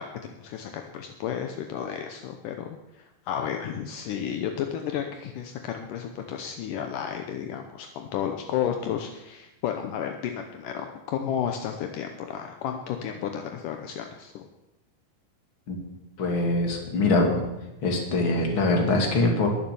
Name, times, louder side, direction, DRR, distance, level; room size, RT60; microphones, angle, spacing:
voice 1, 0.0-14.5, left 9 dB, 75° left, 5 dB, 2.4 m, -32 dB
voice 2, 16.2-17.5 17.8-19.5, left 2 dB, 40° left, 1 dB, 3.1 m, -23 dB
21.5 x 7.4 x 7.0 m, 0.94 s
omnidirectional pair, 3.9 m